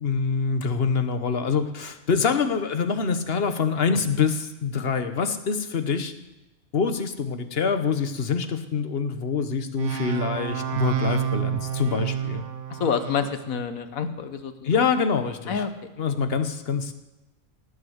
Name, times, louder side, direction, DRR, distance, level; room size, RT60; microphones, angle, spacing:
voice 1, 0.0-6.1 6.7-12.4 14.6-15.6 16.0-16.9, left 5 dB, 45° left, 9 dB, 1.3 m, -25 dB
sound 1, 9.8-13.4, right 10 dB, 85° right, 1.4 m, -29 dB
voice 2, 12.7-14.7 15.5-15.9, left 6 dB, 75° left, 9 dB, 1.6 m, -28 dB
18.0 x 7.8 x 8.0 m, 1.0 s
omnidirectional pair, 1.5 m